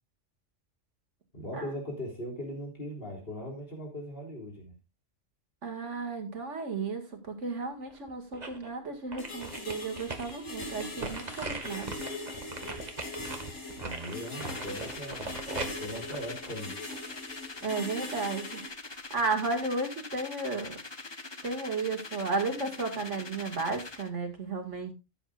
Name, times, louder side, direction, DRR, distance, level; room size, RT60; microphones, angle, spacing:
voice 1, 1.3-4.7 13.7-16.8, equal, 50° left, 0 dB, 3.6 m, -39 dB
voice 2, 5.6-11.9 17.6-18.6 19.1-20.8 21.4-24.9, right 3 dB, 70° right, 5 dB, 2.4 m, -33 dB
sound 1, 7.9-8.7 9.1-17.2 17.6-17.7, right 3 dB, 35° right, 1.6 m, -40 dB
sound 2, 9.2-18.7, left 2 dB, 85° left, 2.7 m, -41 dB
sound 3, 14.3-24.1, left 3 dB, 25° left, 0.8 m, -43 dB
15.0 x 8.2 x 2.5 m, 0.26 s
omnidirectional pair, 1.3 m